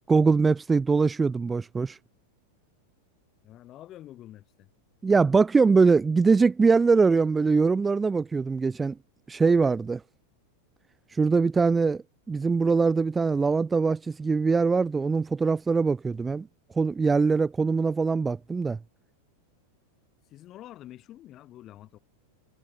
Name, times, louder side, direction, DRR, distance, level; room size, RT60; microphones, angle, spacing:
voice 1, 0.1-2.0 5.0-8.9 9.3-10.0 11.1-12.0 12.3-16.5 16.8-18.8, right 4 dB, 15° right, 0.8 m, -22 dB
voice 2, 3.4-4.7 20.3-22.0, left 13 dB, 35° left, 3.5 m, -47 dB
figure-of-eight pair, 90°, 0 cm